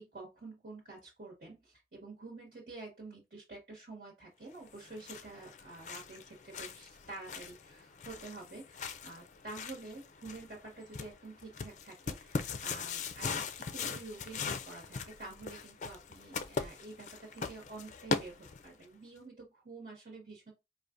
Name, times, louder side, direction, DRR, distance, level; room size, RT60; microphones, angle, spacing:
voice 1, 0.0-20.5, right 3 dB, 65° right, -2 dB, 1.5 m, -49 dB
sound 1, 4.7-18.8, left 5 dB, 45° left, 0.4 m, -40 dB
5.1 x 2.5 x 2.5 m, 0.24 s
head